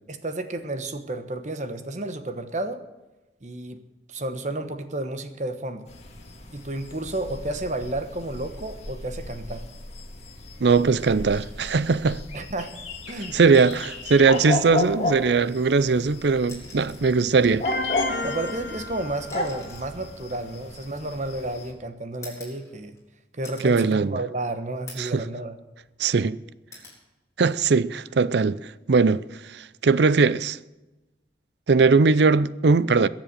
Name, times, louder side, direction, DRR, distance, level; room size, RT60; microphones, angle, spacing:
voice 1, 0.1-2.8 3.4-3.8 4.1-5.9 6.5-9.6 12.3-12.7 13.1-13.7 18.2-22.9 23.3-25.6, right 2 dB, 40° right, 1.2 m, -32 dB
sound 1, 5.9-21.7, left 2 dB, 40° left, 2.0 m, -34 dB
voice 2, 10.6-12.2 13.3-17.7 23.6-24.2 25.0-25.2 26.0-26.4 27.4-29.2 29.5-30.6 31.7-33.1, right 4 dB, 75° right, 0.5 m, -20 dB
sound 2, 13.5-14.2 15.6-15.7 16.4-17.2 18.3-21.4 22.2-23.1 23.4-23.9 24.3-24.4 24.9-25.3 25.7-26.3 26.7-27.0 28.5-28.7, left 3 dB, 15° left, 4.2 m, -47 dB
sound 3, 17.7-19.8, left 3 dB, 65° left, 2.0 m, -32 dB
21.5 x 7.5 x 6.8 m
head